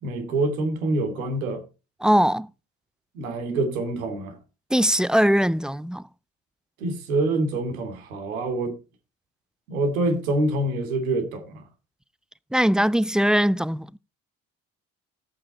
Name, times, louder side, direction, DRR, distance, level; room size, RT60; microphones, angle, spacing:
voice 1, 0.0-1.6 3.1-4.4 6.8-8.8 9.7-11.6, right 2 dB, 80° right, 2.6 m, -26 dB
voice 2, 2.0-2.5 4.7-6.0 12.5-14.0, equal, ahead, 0.5 m, -21 dB
14.0 x 8.6 x 4.1 m
hypercardioid pair, 50°, 41 cm